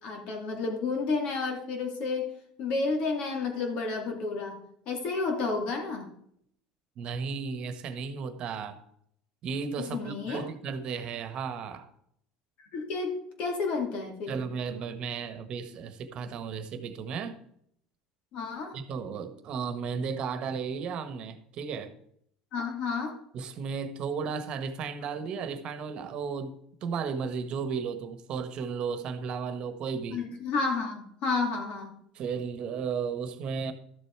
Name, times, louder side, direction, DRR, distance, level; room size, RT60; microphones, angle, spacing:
voice 1, 0.0-2.3 2.6-6.1 9.8-10.4 12.6-14.4 18.3-18.8 22.5-23.2 30.1-32.0, left 4 dB, 55° left, 2.7 m, -31 dB
voice 2, 7.0-8.8 9.4-11.9 14.3-17.4 18.7-22.0 23.3-26.5 26.8-30.2 32.1-33.7, right 5 dB, 45° right, 1.4 m, -34 dB
13.0 x 7.1 x 4.6 m
supercardioid pair, 125°, 2 cm